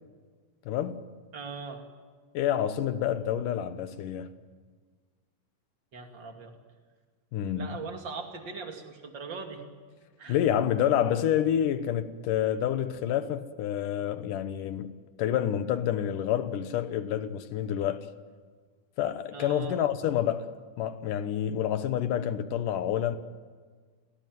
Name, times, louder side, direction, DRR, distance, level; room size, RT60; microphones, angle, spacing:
voice 1, 0.7-1.0 2.3-4.3 7.3-7.8 10.3-18.1 19.0-23.2, left 10 dB, 80° left, 2.7 m, -28 dB
voice 2, 1.3-1.8 5.9-6.5 7.5-9.6 10.2-10.4 19.3-19.8, right 4 dB, 35° right, 2.8 m, -40 dB
27.5 x 18.0 x 9.4 m
omnidirectional pair, 3.7 m